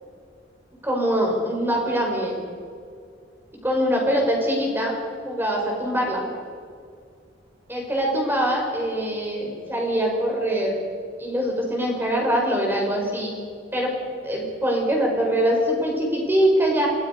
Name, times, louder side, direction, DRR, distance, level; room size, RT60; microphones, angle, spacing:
voice 1, 0.8-2.4 3.6-5.0 5.3-6.2 7.7-10.8 11.2-13.4 13.7-13.9 14.2-16.9, equal, 10° right, -1 dB, 5.4 m, -23 dB
27.0 x 19.5 x 5.4 m, 2.2 s
head